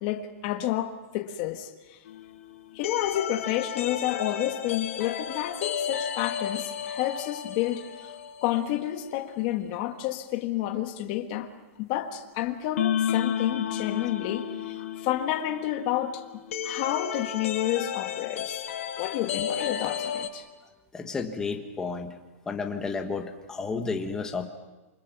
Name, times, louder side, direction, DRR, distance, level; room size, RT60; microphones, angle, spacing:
voice 1, 0.0-2.0 2.7-8.1 8.4-11.5 11.8-16.2 16.6-18.6 19.0-20.5, left 13 dB, 30° left, 5 dB, 1.5 m, -30 dB
sound 1, 2.1-8.8 9.0-9.1 12.8-20.3, left 9 dB, 65° left, 2.3 m, -33 dB
voice 2, 20.9-22.2 22.5-24.5, left 4 dB, 10° left, 4 dB, 1.3 m, -32 dB
28.0 x 24.5 x 6.0 m, 1.1 s
supercardioid pair, 175°, 8 cm